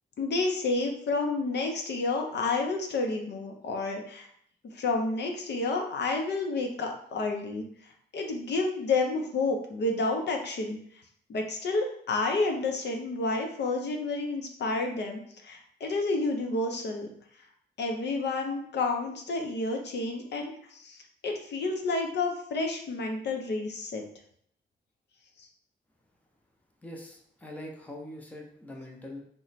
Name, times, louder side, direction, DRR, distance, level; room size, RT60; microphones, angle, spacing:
voice 1, 0.2-4.3 4.7-7.6 8.1-10.8 11.3-17.1 17.8-24.0, left 3 dB, 75° left, 3 dB, 0.6 m, -30 dB
voice 2, 26.8-29.2, left 1 dB, 10° left, 0 dB, 0.5 m, -43 dB
3.0 x 2.1 x 4.0 m, 0.65 s
wide cardioid pair, 150°, 18 cm